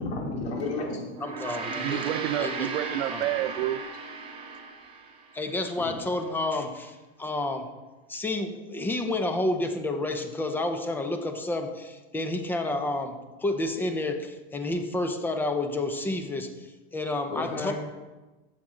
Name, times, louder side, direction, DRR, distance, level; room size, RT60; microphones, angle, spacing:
voice 1, 0.3-1.0 5.7-5.8 17.3-17.7, left 3 dB, 70° left, -3 dB, 4.0 m, -32 dB
Gong, 1.1-5.7, right 4 dB, 15° right, 1.0 m, -36 dB
voice 2, 1.2-2.0 2.4-2.7 3.1-3.2 5.3-7.7 8.1-16.5 16.9-17.7, left 2 dB, 5° left, 7 dB, 0.5 m, -30 dB
voice 3, 1.8-3.8, right 14 dB, 85° right, 15 dB, 0.5 m, -29 dB
13.5 x 7.7 x 3.8 m, 1.2 s
supercardioid pair, 160°, 32 cm